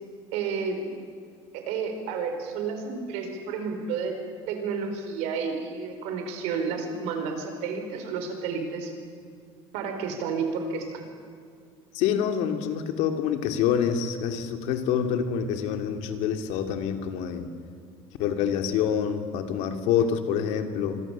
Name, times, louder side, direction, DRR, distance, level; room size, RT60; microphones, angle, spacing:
voice 1, 0.3-0.9 1.5-4.2 4.5-8.9 9.7-11.1, right 5 dB, 80° right, 5 dB, 4.8 m, -31 dB
voice 2, 11.9-17.5 18.2-21.0, left 8 dB, 80° left, 6 dB, 2.6 m, -26 dB
26.0 x 24.0 x 7.5 m, 2.2 s
cardioid pair, 160°, 11 cm